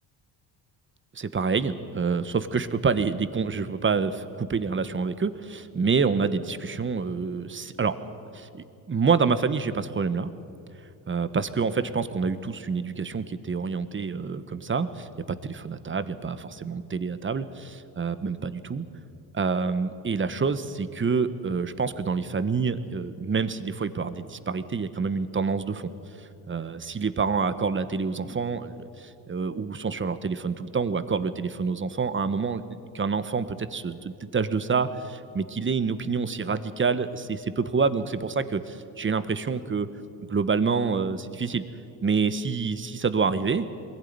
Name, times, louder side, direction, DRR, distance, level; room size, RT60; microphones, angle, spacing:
voice 1, 1.1-7.9 8.3-10.3 11.1-18.9 19.3-25.9 26.5-28.8 29.3-32.6 32.9-39.9 40.3-41.6 42.0-43.6, right 5 dB, 25° right, 12 dB, 1.3 m, -27 dB
21.5 x 16.0 x 9.6 m, 2.7 s
supercardioid pair, 80°, 45 cm